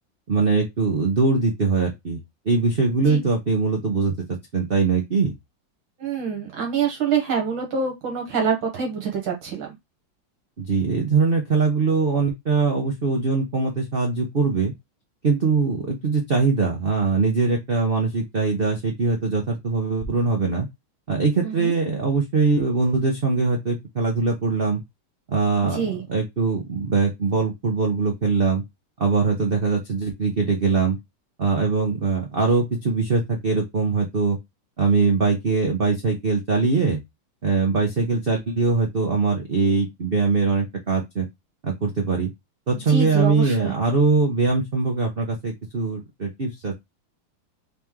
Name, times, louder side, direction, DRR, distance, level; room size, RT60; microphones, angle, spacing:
voice 1, 0.3-2.2 2.4-4.1 4.5-5.3 10.6-14.7 15.2-20.7 21.1-24.8 25.3-28.6 29.0-31.0 31.4-34.4 34.8-37.0 37.4-41.3 41.6-42.3 42.7-46.8, right 4 dB, 50° right, 0.6 m, -22 dB
voice 2, 6.0-9.7 21.4-21.7 25.7-26.0 42.9-43.7, right 6 dB, 70° right, 1.9 m, -26 dB
4.0 x 3.1 x 3.6 m
omnidirectional pair, 2.3 m